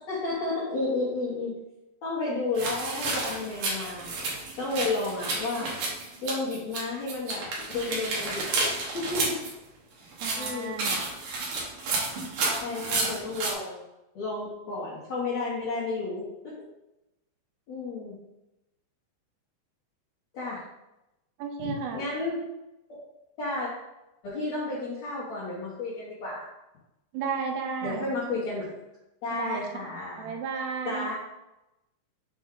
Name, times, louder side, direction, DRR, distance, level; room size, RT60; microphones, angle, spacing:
voice 1, 0.1-1.5 2.0-4.1 4.6-5.7 6.2-7.5 7.7-8.5 8.8-9.3 10.3-10.9 12.6-13.8 14.1-16.5 17.7-18.2 20.3-20.6 21.6-22.5 23.4-23.7 24.2-26.5 27.8-28.7 29.2-30.3 30.8-31.1, left 3 dB, 80° left, -9 dB, 1.5 m, -32 dB
sound 1, 2.5-6.8 7.1-9.5 10.1-13.5, right 3 dB, 65° right, 2.1 m, -31 dB
voice 2, 10.2-11.1 21.4-22.0 27.1-28.1 29.3-29.7 30.2-31.1, right 6 dB, 80° right, 3 dB, 2.4 m, -33 dB
7.0 x 4.7 x 3.8 m, 0.94 s
omnidirectional pair, 5.6 m